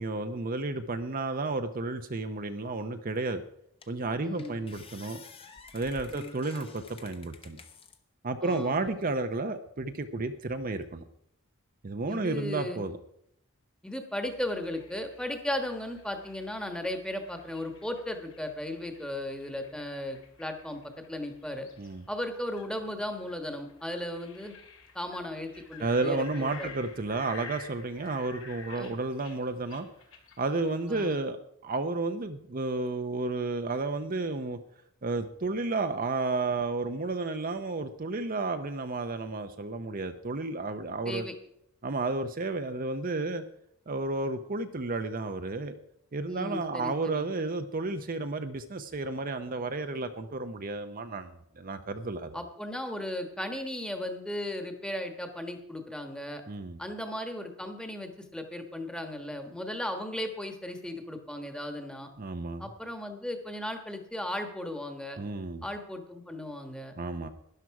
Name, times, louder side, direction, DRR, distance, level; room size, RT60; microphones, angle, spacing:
voice 1, 0.0-3.4 3.9-5.2 5.7-7.6 8.2-11.0 11.8-13.0 21.8-22.0 25.8-29.9 30.4-31.4 31.6-34.6 35.0-41.3 41.8-43.4 43.9-45.8 46.1-51.3 51.6-52.4 56.5-56.8 62.2-62.7 65.2-65.6 67.0-67.3, right 3 dB, 40° right, 7 dB, 0.6 m, -32 dB
sound 1, 3.2-3.3 3.8-4.1 4.4-8.0 8.5-9.2, left 4 dB, 25° left, 1.0 m, -50 dB
voice 2, 4.2-4.6 6.1-6.4 8.4-8.8 12.1-12.8 13.8-20.8 21.1-21.7 22.1-24.5 24.9-26.7 28.7-28.9 30.9-31.1 41.0-41.3 46.3-47.3 52.3-56.4 56.8-62.1 62.6-65.2 65.6-66.9, left 1 dB, 5° left, 5 dB, 1.3 m, -36 dB
sound 2, 14.2-31.0, left 4 dB, 70° left, 2.4 m, -52 dB
12.5 x 10.5 x 4.7 m, 0.74 s
head